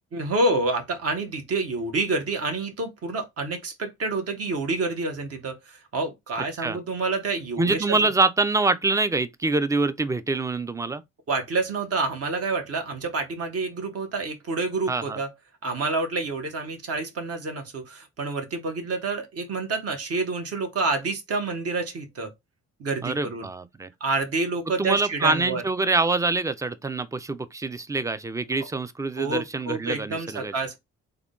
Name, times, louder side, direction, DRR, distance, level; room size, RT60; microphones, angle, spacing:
voice 1, 0.1-8.1 11.3-15.3 15.6-22.3 22.8-23.5 24.0-25.6 29.2-30.8, right 3 dB, 50° right, 1.1 m, -28 dB
voice 2, 7.6-11.0 14.9-15.2 23.0-23.9 24.8-30.5, right 3 dB, 10° right, 0.3 m, -25 dB
3.5 x 2.2 x 3.7 m
cardioid pair, 90°, 30 cm